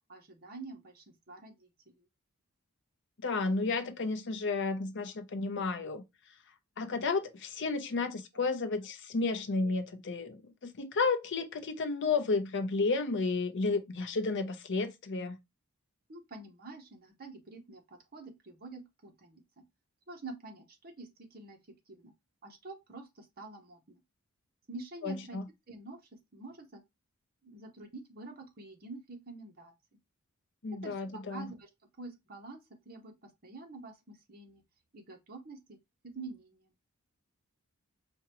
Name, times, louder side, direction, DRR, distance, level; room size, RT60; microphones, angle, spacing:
voice 1, 0.1-1.9 8.3-8.4 9.6-9.8 11.4-11.5 16.1-19.6 20.1-21.6 21.9-22.1 22.4-24.0 24.7-25.4 25.7-26.0 26.3-26.8 27.4-29.7 30.7-31.7 32.0-32.6 32.9-34.6 34.9-35.8 36.0-36.7, right 3 dB, 40° right, 0.8 m, -47 dB
voice 2, 3.2-6.0 6.8-15.4 25.0-25.5 30.6-31.5, left 3 dB, 55° left, 0.6 m, -32 dB
4.8 x 2.2 x 2.9 m
head